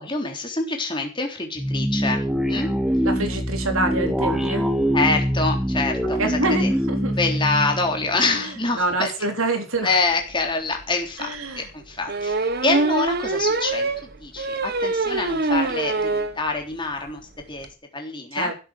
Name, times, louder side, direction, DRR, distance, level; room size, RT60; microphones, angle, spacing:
voice 1, 0.0-2.7 4.9-6.7 7.2-9.1 9.8-17.2 17.5-17.7 17.9-18.5, left 3 dB, 20° left, 3 dB, 3.6 m, -26 dB
sound 1, 1.6-8.7, equal, ahead, 1.5 m, -24 dB
voice 2, 3.0-4.7 6.2-7.1 8.3-10.0 11.2-11.7 18.3-18.5, right 2 dB, 70° right, 5 dB, 3.7 m, -26 dB
sound 2, 10.3-10.4 10.8-10.9 12.1-16.4 16.8-16.9 17.1-17.2 17.4-17.7, right 2 dB, 45° right, 1.3 m, -24 dB
16.0 x 8.7 x 6.7 m, 0.34 s
head